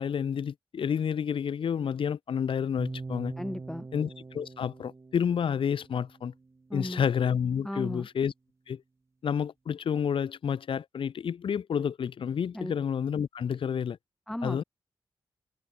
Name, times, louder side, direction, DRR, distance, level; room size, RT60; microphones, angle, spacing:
voice 1, 0.0-3.3 3.9-4.1 4.3-6.3 6.7-8.3 8.7-8.8 9.2-14.0 14.4-14.6, left 7 dB, 80° left, 1.6 m, -29 dB
sound 1, 2.8-6.9, right 3 dB, 30° right, 2.5 m, -43 dB
voice 2, 3.4-3.9 6.7-7.0 7.6-8.1 12.5-12.7 14.3-14.6, left 1 dB, 5° left, 0.9 m, -35 dB
wide cardioid pair, 130°, 9 cm